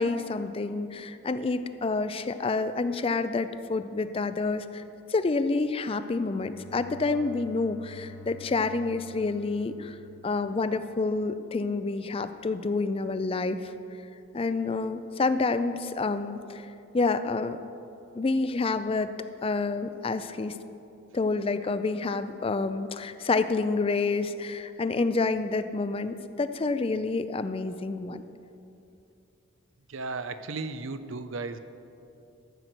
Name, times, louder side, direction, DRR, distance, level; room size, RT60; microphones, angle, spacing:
voice 1, 0.0-4.8 5.1-10.0 10.2-13.7 14.3-16.7 16.9-17.6 18.1-19.1 19.4-20.6 21.1-28.2, left 3 dB, 25° left, 11 dB, 0.4 m, -28 dB
Bowed string instrument, 6.1-11.1, left 3 dB, 85° left, 0.9 m, -49 dB
voice 2, 29.9-31.6, right 3 dB, 70° right, 11 dB, 0.6 m, -35 dB
14.0 x 6.1 x 8.0 m, 2.7 s
head